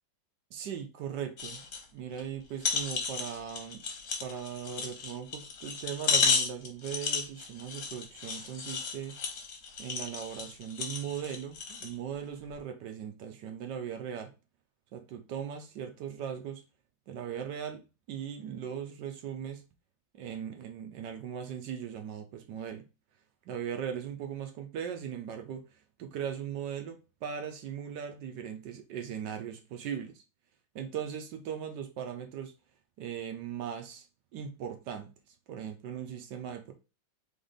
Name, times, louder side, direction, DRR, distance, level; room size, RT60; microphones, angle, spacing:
voice 1, 0.5-1.7 1.9-3.8 4.2-9.2 9.8-14.3 14.9-16.6 17.1-19.6 20.1-22.8 23.5-25.6 26.0-30.2 30.7-32.5 33.0-34.0 34.3-35.1 35.5-36.7, right 8 dB, 70° right, 1.1 m, -39 dB
sound 1, 1.4-1.8 2.2-2.3 2.6-11.9 12.5-12.6, left 5 dB, 55° left, 1.1 m, -33 dB
3.7 x 3.5 x 3.8 m
omnidirectional pair, 2.3 m